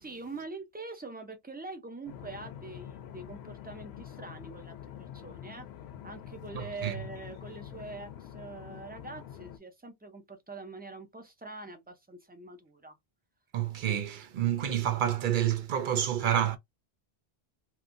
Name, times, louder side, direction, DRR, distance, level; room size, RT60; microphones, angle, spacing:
voice 1, 0.0-5.7 6.0-13.0, right 3 dB, 10° right, 0.5 m, -44 dB
sound 1, 2.1-9.6, left 10 dB, 85° left, 0.8 m, -46 dB
voice 2, 6.5-7.0 13.5-16.6, right 10 dB, 60° right, 0.7 m, -28 dB
2.9 x 2.6 x 2.5 m
omnidirectional pair, 1.0 m